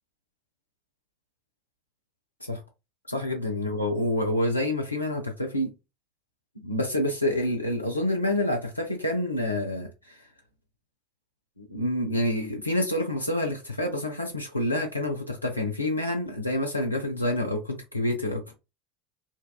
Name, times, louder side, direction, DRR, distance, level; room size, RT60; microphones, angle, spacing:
voice 1, 3.1-5.7 6.6-10.2 11.6-18.5, left 1 dB, 90° left, 0.4 m, -28 dB
2.6 x 2.2 x 2.3 m
figure-of-eight pair, 75°, 0 cm